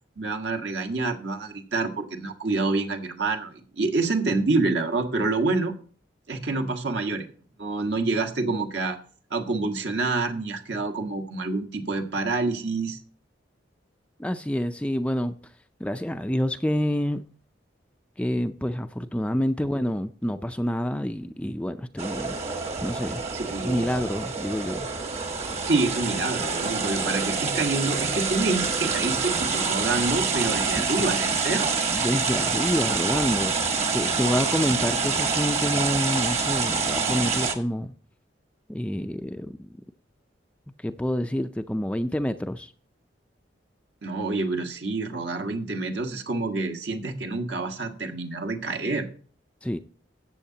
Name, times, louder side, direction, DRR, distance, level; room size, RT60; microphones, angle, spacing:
voice 1, 0.2-5.7 6.3-7.3 7.6-9.0 9.3-13.0 23.3-23.9 25.6-31.8 34.5-34.8 44.0-49.1, right 3 dB, 70° right, 1.5 m, -27 dB
voice 2, 14.2-15.4 15.8-17.2 18.2-22.4 22.8-23.2 23.6-24.9 30.7-30.9 31.9-37.9 38.7-39.7 40.8-42.7 49.6-49.8, equal, 5° left, 0.4 m, -28 dB
sound 1, 22.0-37.5, right 4 dB, 35° right, 1.2 m, -26 dB
13.5 x 8.3 x 2.8 m
head